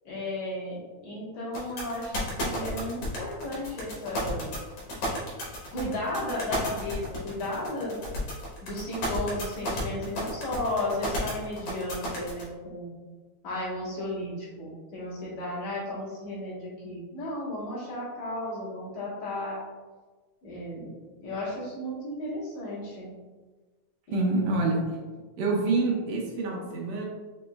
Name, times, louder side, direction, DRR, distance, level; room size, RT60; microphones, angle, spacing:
voice 1, 0.0-4.5 5.7-8.0 8.6-12.9 13.4-19.6 20.4-20.9 21.2-23.1 24.1-24.5, left 1 dB, 75° left, -7 dB, 2.9 m, -34 dB
sound 1, 1.5-12.4, equal, 60° left, 2.1 m, -32 dB
voice 2, 24.1-25.0 25.4-27.1, right 3 dB, 75° right, -1 dB, 1.8 m, -26 dB
6.0 x 2.9 x 2.3 m, 1.3 s
omnidirectional pair, 3.4 m